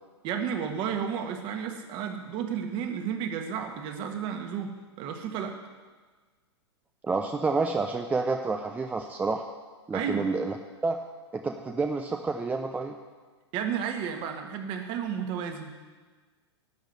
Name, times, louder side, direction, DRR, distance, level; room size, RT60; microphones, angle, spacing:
voice 1, 0.2-5.5 9.9-10.3 13.5-15.7, right 7 dB, 35° right, 5 dB, 1.6 m, -32 dB
voice 2, 7.0-9.5 9.9-10.6 10.8-11.0 11.3-12.9, right 3 dB, 10° right, 5 dB, 0.6 m, -29 dB
12.0 x 6.5 x 9.7 m, 1.4 s
figure-of-eight pair, 105°, 14 cm